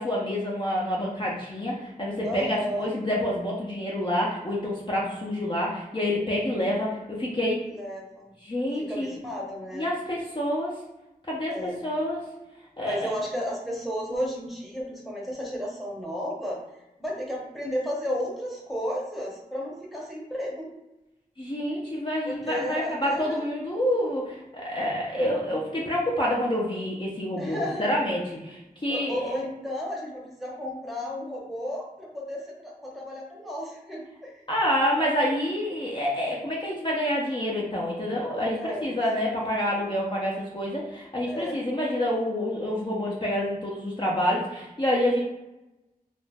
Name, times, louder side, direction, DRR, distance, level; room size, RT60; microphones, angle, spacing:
voice 1, 0.0-7.6 8.4-9.2 9.7-10.8 11.2-12.3 12.8-13.1 21.4-29.3 34.5-45.2, left 1 dB, 35° left, -5 dB, 0.6 m, -28 dB
voice 2, 2.2-2.9 7.7-8.3 8.8-9.9 11.5-11.8 12.8-16.6 17.0-20.7 22.3-23.4 27.4-27.9 28.9-34.4 38.6-39.0 39.7-39.9 41.3-41.6, equal, ahead, -4 dB, 0.8 m, -33 dB
2.4 x 2.0 x 3.3 m, 0.97 s
wide cardioid pair, 60°, 15 cm